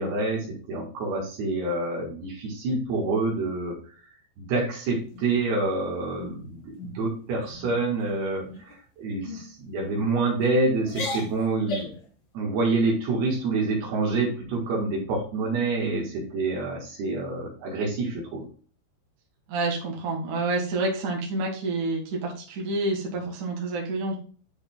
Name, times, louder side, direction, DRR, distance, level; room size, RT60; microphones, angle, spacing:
voice 1, 0.0-3.8 4.4-11.9 12.4-18.4, right 3 dB, 70° right, -2 dB, 3.4 m, -27 dB
sound 1, 5.1-5.7 6.2-6.4 6.8-7.1 7.4-7.8 8.4-8.8 9.2-9.4 10.1-10.5 10.8-12.1, left 1 dB, 55° left, 3.8 m, -36 dB
voice 2, 19.5-24.2, right 2 dB, 55° right, -1 dB, 3.1 m, -28 dB
10.5 x 4.9 x 2.4 m, 0.41 s
omnidirectional pair, 4.9 m